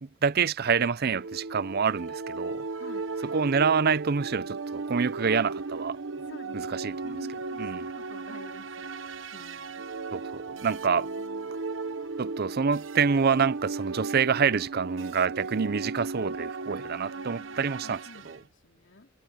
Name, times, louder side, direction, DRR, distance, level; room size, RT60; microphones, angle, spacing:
voice 1, 0.0-2.7 3.3-6.0 6.5-6.9 7.6-7.9 10.1-11.1 12.2-18.0 18.3-18.4, right 6 dB, 55° right, 0.6 m, -27 dB
sound 1, 1.1-18.4, right 4 dB, 80° right, 1.0 m, -36 dB
voice 2, 2.8-3.2 5.3-5.5 6.3-9.9 10.6-11.6 17.1-19.1, left 2 dB, 75° left, 2.8 m, -51 dB
head